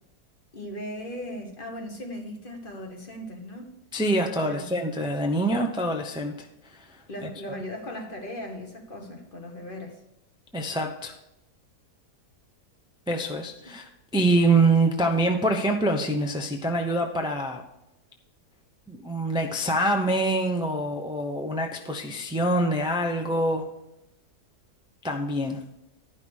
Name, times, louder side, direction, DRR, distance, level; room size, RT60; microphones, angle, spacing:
voice 1, 0.5-3.8 4.4-4.7 7.1-10.0, left 1 dB, 35° left, 3 dB, 1.4 m, -38 dB
voice 2, 3.9-6.9 7.2-7.3 10.5-11.1 13.1-17.6 18.9-23.7 25.0-25.6, right 1 dB, 5° right, 2 dB, 0.3 m, -25 dB
11.0 x 5.8 x 6.3 m, 0.87 s
omnidirectional pair, 1.7 m